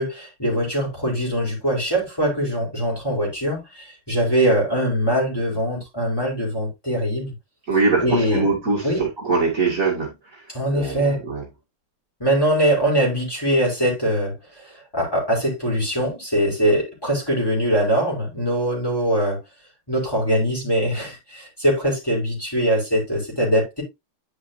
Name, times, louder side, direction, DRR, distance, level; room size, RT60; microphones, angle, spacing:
voice 1, 0.0-7.3 8.0-8.4 8.8-9.0 10.5-11.2 12.2-19.4 19.9-23.8, equal, 10° left, 4.3 m, -22 dB
voice 2, 7.7-10.5 10.7-11.5, right 4 dB, 40° right, 2.8 m, -23 dB
10.5 x 5.4 x 2.7 m
omnidirectional pair, 2.2 m